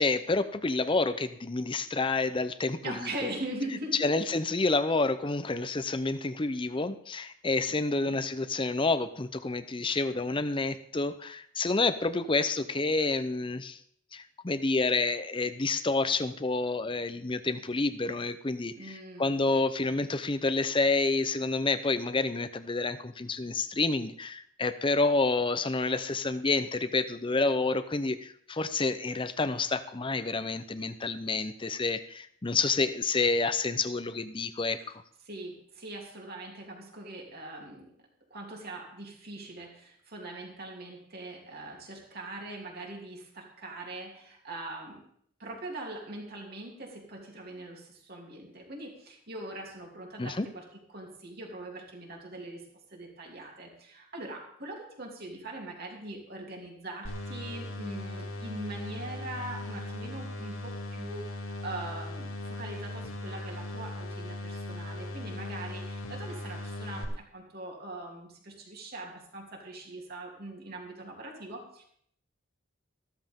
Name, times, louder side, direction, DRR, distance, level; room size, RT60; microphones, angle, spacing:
voice 1, 0.0-3.3 4.0-13.8 14.1-18.7 19.2-35.0 50.2-50.5, left 3 dB, 25° left, 12 dB, 0.6 m, -29 dB
voice 2, 2.8-4.3 7.7-8.2 18.7-19.4 35.2-37.9 38.3-45.0 45.4-50.6 50.9-52.6 52.9-71.8, right 2 dB, 50° right, 0 dB, 3.2 m, -42 dB
sound 1, 57.0-67.0, left 1 dB, 90° left, 2.3 m, -38 dB
15.0 x 13.0 x 3.7 m, 0.65 s
head